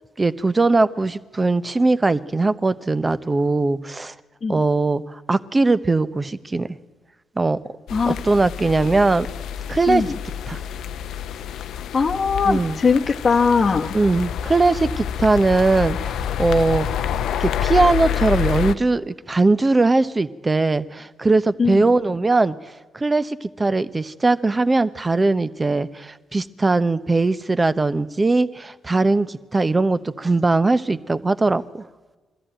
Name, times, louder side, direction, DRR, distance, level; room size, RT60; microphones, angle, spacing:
voice 1, 0.2-4.1 4.5-5.0 5.3-6.7 7.4-7.6 8.1-9.3 9.7-10.0 10.5-10.6 12.4-12.8 13.9-16.9 17.4-22.6 22.9-31.8, right 3 dB, 30° right, 14 dB, 0.9 m, -20 dB
sound 1, 7.9-18.7, left 9 dB, 75° left, 0.6 m, -28 dB
voice 2, 11.7-13.9 21.6-21.9, left 5 dB, 40° left, -1 dB, 1.0 m, -20 dB
22.0 x 14.0 x 9.0 m, 1.3 s
hypercardioid pair, 50°, 0 cm